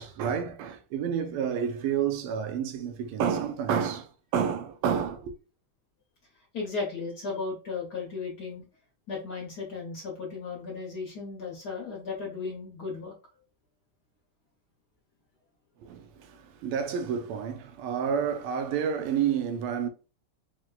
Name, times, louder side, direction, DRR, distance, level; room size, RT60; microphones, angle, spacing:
voice 1, 0.0-5.3 15.8-19.9, right 7 dB, 85° right, 1.5 m, -29 dB
voice 2, 6.5-8.6 9.1-13.1, left 4 dB, 60° left, 1.3 m, -35 dB
4.5 x 2.1 x 2.3 m
omnidirectional pair, 2.4 m